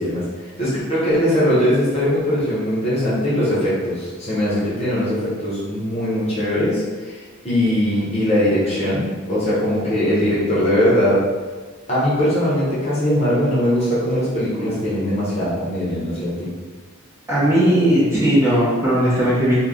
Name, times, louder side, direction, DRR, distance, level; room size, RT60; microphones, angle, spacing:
voice 1, 0.0-11.3 11.9-16.5, equal, 30° left, -9 dB, 0.9 m, -20 dB
voice 2, 17.3-19.5, equal, 15° right, -10 dB, 1.0 m, -17 dB
3.2 x 2.3 x 3.7 m, 1.4 s
head